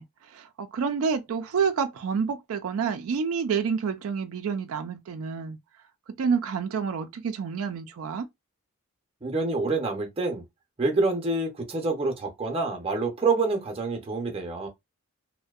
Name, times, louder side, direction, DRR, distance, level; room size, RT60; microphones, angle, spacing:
voice 1, 0.0-5.6 6.2-8.3, right 6 dB, 75° right, 0.4 m, -28 dB
voice 2, 9.2-10.4 10.8-14.7, right 3 dB, 25° right, 0.6 m, -27 dB
2.6 x 2.1 x 2.3 m
head